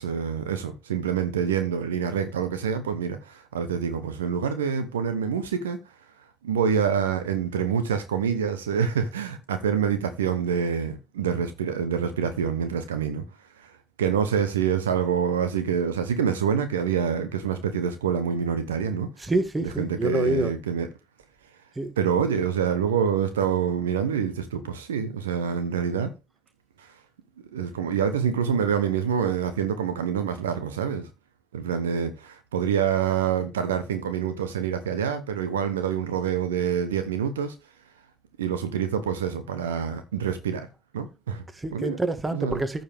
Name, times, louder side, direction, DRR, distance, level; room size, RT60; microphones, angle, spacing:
voice 1, 0.0-5.8 6.4-13.2 13.6-13.7 14.0-19.1 19.6-20.9 22.0-26.1 27.5-31.1 31.5-37.5 38.4-40.7 40.9-41.4 41.7-42.0 42.3-42.6, right 7 dB, 80° right, 0.9 m, -26 dB
voice 2, 19.2-20.5 21.8-21.9 41.6-42.8, right 2 dB, 25° right, 1.8 m, -26 dB
14.5 x 5.2 x 3.5 m
figure-of-eight pair, 45°, 0 cm